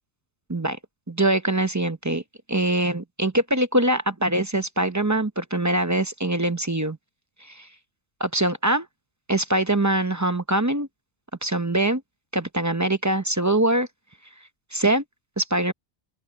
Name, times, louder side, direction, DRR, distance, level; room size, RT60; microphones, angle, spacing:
voice 1, 1.1-2.2 2.5-7.0 7.4-7.7 8.2-8.9 9.3-10.9 11.4-12.0 12.3-13.9 14.7-15.0 15.4-15.7, right 1 dB, 20° right, 0.7 m, -23 dB
open air
omnidirectional pair, 1.1 m